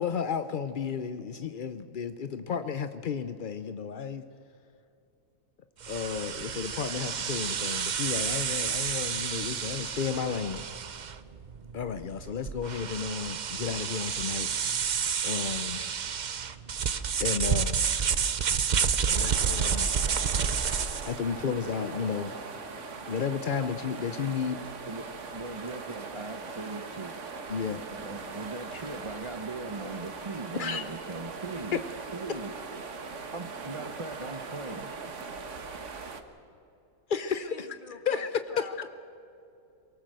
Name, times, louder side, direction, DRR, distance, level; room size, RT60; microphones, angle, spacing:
voice 1, 0.0-4.2 5.9-10.7 11.7-14.5 14.7-14.9 15.2-15.9 17.2-17.9 19.0-19.9 21.1-22.4 23.0-24.6 27.5-27.8 30.6-30.8 31.7-31.8 37.1-37.7 38.1-38.3 38.6-38.9, left 6 dB, 65° left, 11 dB, 0.5 m, -32 dB
sound 1, 5.8-21.2, right 7 dB, 65° right, 0.4 m, -30 dB
sound 2, 19.1-36.2, right 4 dB, 50° right, 1.6 m, -40 dB
voice 2, 24.6-25.0 25.3-27.1 27.9-31.8 32.1-32.5 33.3-34.9, right 3 dB, 30° right, 7 dB, 0.6 m, -39 dB
voice 3, 37.4-38.8, left 2 dB, 30° left, 5 dB, 2.2 m, -45 dB
23.0 x 18.5 x 7.6 m, 2.7 s
omnidirectional pair, 1.8 m